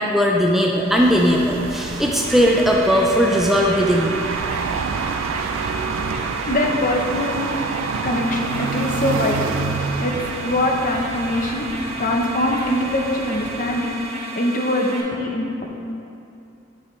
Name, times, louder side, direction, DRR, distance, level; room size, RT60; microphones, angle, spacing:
voice 1, 0.0-4.2, equal, ahead, -1 dB, 0.4 m, -18 dB
sound 1, 0.8-14.1, right 5 dB, 90° right, 0.4 m, -28 dB
sound 2, 2.2-15.0, right 2 dB, 35° right, 0.8 m, -34 dB
voice 2, 6.5-7.5 8.0-9.6 10.0-10.1 10.4-11.7 12.0-15.7, left 1 dB, 45° left, 1 dB, 0.6 m, -23 dB
8.3 x 5.0 x 3.1 m, 2.6 s
head